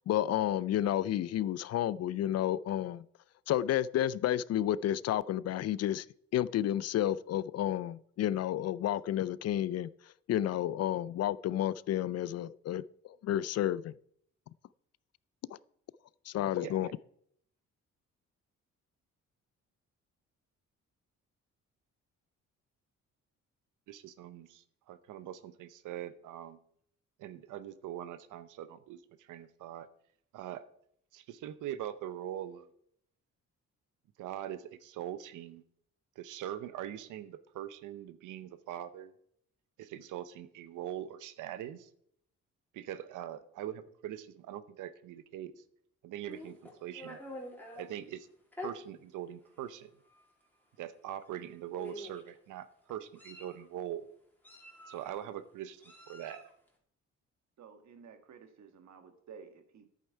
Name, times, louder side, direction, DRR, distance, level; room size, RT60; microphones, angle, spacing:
voice 1, 0.1-3.0 3.5-6.1 6.3-9.9 10.3-12.8 13.2-13.9 16.3-16.9, left 12 dB, 55° left, 0.4 m, -31 dB
voice 2, 16.6-16.9 23.9-26.6 27.2-29.9 30.3-30.7 31.1-32.7 34.2-35.6 36.2-39.1 39.8-41.9 42.7-45.5 46.0-47.2 47.8-48.3 48.6-49.9 50.8-54.1 54.9-56.5, right 11 dB, 85° right, 0.8 m, -42 dB
Meow, 46.2-47.9 48.5-48.7 49.6-49.7 50.1-50.3 51.3-51.4 51.8-52.3 52.9-53.6 54.4-55.2 55.8-56.5, left 1 dB, 5° left, 2.9 m, -46 dB
voice 3, 57.6-59.9, right 6 dB, 65° right, 1.6 m, -53 dB
10.5 x 8.6 x 4.6 m
cardioid pair, 90°, 30 cm